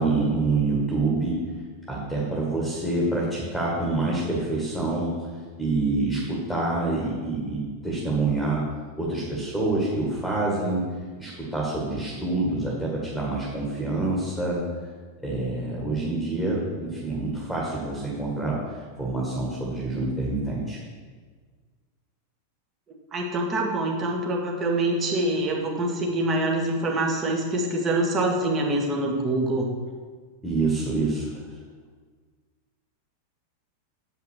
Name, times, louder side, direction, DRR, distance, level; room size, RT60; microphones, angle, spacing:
voice 1, 0.0-1.4 1.9-5.1 5.6-8.6 9.0-10.8 11.2-14.6 15.2-20.8 30.4-31.5, right 3 dB, ahead, -4 dB, 1.9 m, -26 dB
voice 2, 23.1-29.7, right 1 dB, 25° right, 0 dB, 1.7 m, -25 dB
7.5 x 5.8 x 6.5 m, 1.5 s
figure-of-eight pair, 90°, 0 cm